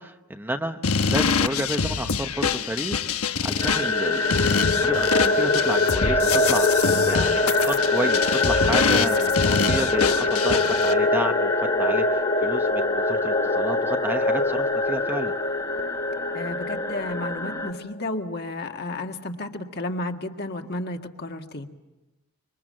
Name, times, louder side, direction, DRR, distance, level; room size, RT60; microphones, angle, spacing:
voice 1, 0.0-3.0 3.4-9.4 9.6-15.3, right 1 dB, 10° right, 6 dB, 0.9 m, -31 dB
sound 1, 0.8-10.9, left 5 dB, 85° left, 1.1 m, -25 dB
sound 2, 3.5-17.8, left 2 dB, 35° left, 0.9 m, -25 dB
sound 3, 3.6-17.7, left 3 dB, 15° left, 1.3 m, -28 dB
voice 2, 16.3-21.7, left 2 dB, 50° left, 4 dB, 1.8 m, -32 dB
26.5 x 24.0 x 7.7 m, 1.1 s
head